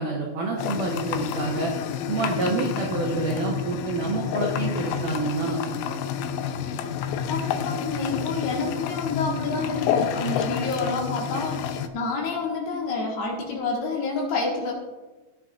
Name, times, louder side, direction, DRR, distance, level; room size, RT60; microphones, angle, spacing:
voice 1, 0.0-1.7 2.1-5.8, right 3 dB, 80° right, -2 dB, 1.8 m, -28 dB
sound 1, 0.6-11.9, left 8 dB, 85° left, 2.7 m, -29 dB
voice 2, 7.3-14.7, left 3 dB, 65° left, -2 dB, 3.1 m, -28 dB
16.0 x 9.9 x 2.5 m, 1.2 s
omnidirectional pair, 5.8 m